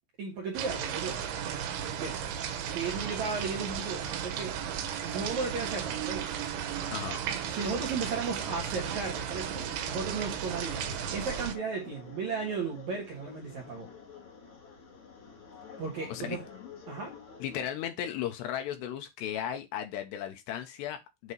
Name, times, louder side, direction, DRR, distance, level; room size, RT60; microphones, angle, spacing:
voice 1, 0.2-1.3 2.0-2.2 2.7-4.6 5.0-6.3 7.5-13.9 15.8-16.4 16.9-17.2, right 4 dB, 65° right, 1.9 m, -35 dB
sound 1, 0.5-11.5, right 8 dB, 80° right, 3.4 m, -35 dB
sound 2, 8.1-17.6, left 6 dB, 45° left, 2.0 m, -50 dB
voice 2, 17.4-21.3, left 10 dB, 75° left, 2.8 m, -35 dB
8.2 x 3.0 x 5.4 m
omnidirectional pair, 5.3 m